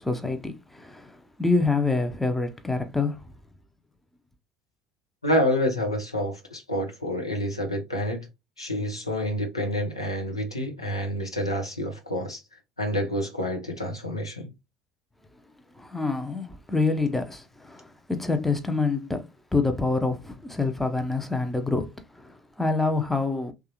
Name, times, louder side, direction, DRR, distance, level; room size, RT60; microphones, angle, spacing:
voice 1, 0.0-3.2 15.8-19.3 19.5-23.5, left 3 dB, 5° left, 0.6 m, -26 dB
voice 2, 5.2-8.3 8.6-12.4 12.8-14.5, equal, 85° left, 0.6 m, -28 dB
3.2 x 2.4 x 2.8 m
figure-of-eight pair, 60°, 3 cm